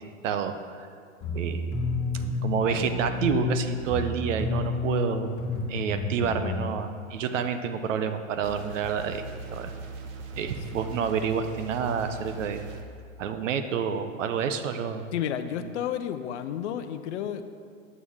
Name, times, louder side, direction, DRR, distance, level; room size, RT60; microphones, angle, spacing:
voice 1, 0.2-0.9 1.3-1.6 2.1-5.4 5.7-9.7 10.4-12.6 13.2-15.0 15.6-15.7, right 7 dB, 65° right, 8 dB, 0.9 m, -29 dB
sound 1, 1.2-6.5, left 3 dB, 25° left, 2.2 m, -30 dB
sound 2, 8.4-12.8, right 3 dB, 35° right, 0.9 m, -40 dB
voice 2, 15.1-17.4, left 9 dB, 60° left, 10 dB, 0.7 m, -31 dB
9.6 x 8.4 x 3.6 m, 2.2 s
hypercardioid pair, 110°, 40 cm